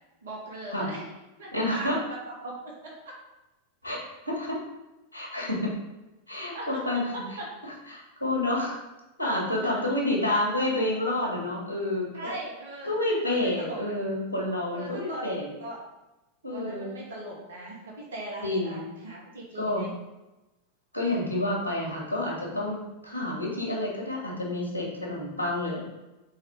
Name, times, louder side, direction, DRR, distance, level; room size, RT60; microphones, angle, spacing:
voice 1, 0.2-1.0 1.4-2.9 6.3-6.9 7.1-7.5 9.6-9.7 12.1-12.9 13.3-13.9 14.7-15.3 15.6-15.8 16.5-19.9, right 1 dB, 60° right, -3 dB, 1.9 m, -39 dB
voice 2, 1.5-2.0 3.8-4.6 5.1-5.7 6.3-7.0 7.9-8.8 9.2-12.3 12.8-15.5 16.4-16.9 18.4-18.8 19.5-19.9 20.9-25.8, left 1 dB, 90° right, -2 dB, 2.1 m, -29 dB
4.7 x 4.7 x 4.9 m, 1.0 s
figure-of-eight pair, 90°, 0 cm